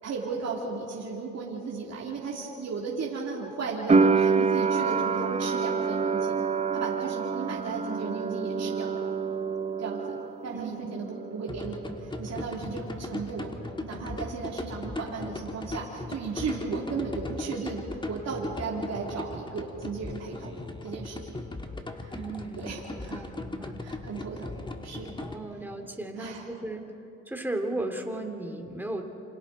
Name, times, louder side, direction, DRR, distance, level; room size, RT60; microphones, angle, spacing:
voice 1, 0.0-6.4 6.7-8.9 9.8-10.2 10.4-13.6 13.8-20.5 20.8-21.3 22.0-22.2 22.6-23.2 23.8-25.2 26.2-26.5, right 4 dB, 60° right, -3 dB, 2.9 m, -35 dB
sound 1, 3.9-10.7 10.9-11.8, right 5 dB, 20° right, 0.7 m, -27 dB
voice 2, 10.5-10.9 22.1-23.8 25.2-26.8 27.3-29.0, right 2 dB, 5° right, 3 dB, 2.5 m, -35 dB
sound 2, 11.5-25.3, left 2 dB, 15° left, 1.6 m, -38 dB
28.5 x 26.0 x 4.1 m, 2.9 s
cardioid pair, 90°, 30 cm